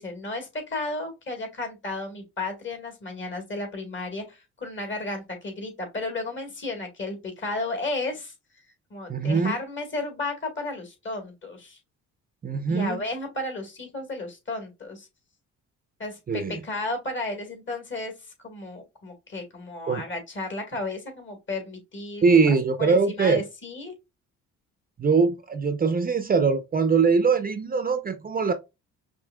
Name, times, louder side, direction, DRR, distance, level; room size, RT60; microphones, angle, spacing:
voice 1, 0.0-8.3 8.9-11.8 12.7-15.1 16.0-23.9, left 2 dB, 40° left, 2.0 m, -33 dB
voice 2, 9.1-9.6 12.4-13.0 16.3-16.6 19.8-20.0 22.2-23.4 25.0-28.5, right 5 dB, 30° right, 0.6 m, -22 dB
5.4 x 2.7 x 2.2 m
cardioid pair, 90°, 30 cm